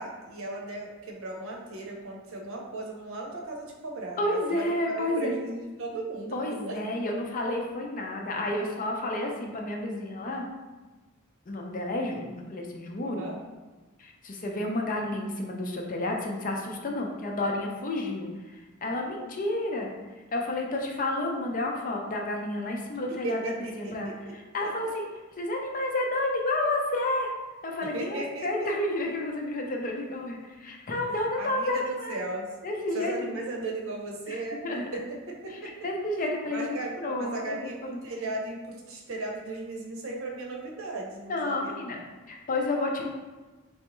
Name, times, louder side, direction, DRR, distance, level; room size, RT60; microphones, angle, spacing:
voice 1, 0.0-6.8 13.0-13.4 23.2-24.1 24.6-24.9 27.8-28.7 31.1-32.5 32.9-35.7 36.5-41.7, right 2 dB, 70° right, 0 dB, 0.8 m, -36 dB
voice 2, 4.2-5.3 6.3-10.5 11.5-13.3 14.0-19.9 20.3-24.1 24.5-25.0 25.4-27.3 27.6-32.2 32.6-33.3 34.3-34.4 34.6-34.8 35.6-38.0 41.3-42.0 42.3-43.1, left 1 dB, 40° left, 1 dB, 0.6 m, -30 dB
4.0 x 3.4 x 3.0 m, 1.2 s
head